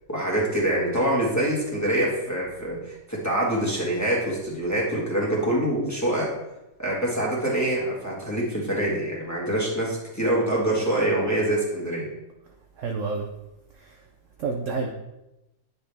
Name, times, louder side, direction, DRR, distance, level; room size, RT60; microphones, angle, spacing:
voice 1, 0.1-6.3 6.8-12.1, right 1 dB, 10° left, -6 dB, 1.4 m, -25 dB
voice 2, 12.8-13.3 14.4-14.9, right 4 dB, 70° right, 3 dB, 0.7 m, -28 dB
9.6 x 4.1 x 3.4 m, 0.95 s
omnidirectional pair, 1.9 m